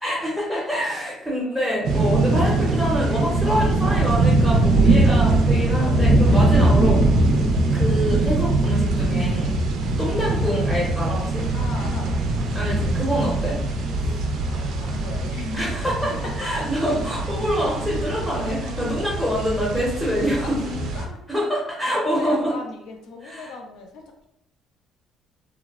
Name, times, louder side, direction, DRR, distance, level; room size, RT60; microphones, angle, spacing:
voice 1, 0.0-7.0 7.7-9.5 10.0-11.4 12.5-13.6 15.5-20.6 21.3-22.5 23.2-23.5, equal, 5° left, -6 dB, 0.7 m, -25 dB
sound 1, 1.8-21.0, right 2 dB, 70° right, 0.4 m, -21 dB
voice 2, 11.5-12.4 13.7-15.6 16.1-16.5 16.9-17.2 18.7-18.9 20.4-21.2 21.8-24.2, left 4 dB, 70° left, 3 dB, 0.5 m, -39 dB
3.0 x 2.0 x 2.3 m, 0.76 s
cardioid pair, 155°, 0 cm